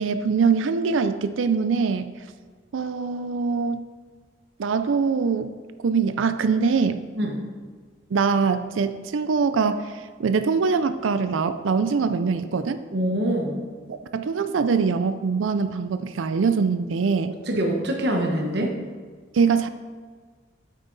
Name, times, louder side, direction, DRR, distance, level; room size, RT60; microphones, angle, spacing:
voice 1, 0.0-2.2 2.7-3.8 4.6-5.6 5.8-7.0 8.1-9.9 10.2-12.8 13.9-17.3 18.6-18.7 19.3-19.7, right 5 dB, 90° right, 11 dB, 0.4 m, -23 dB
voice 2, 12.9-13.6 17.3-18.7, equal, 60° right, 2 dB, 1.2 m, -25 dB
8.4 x 8.1 x 4.0 m, 1.5 s
head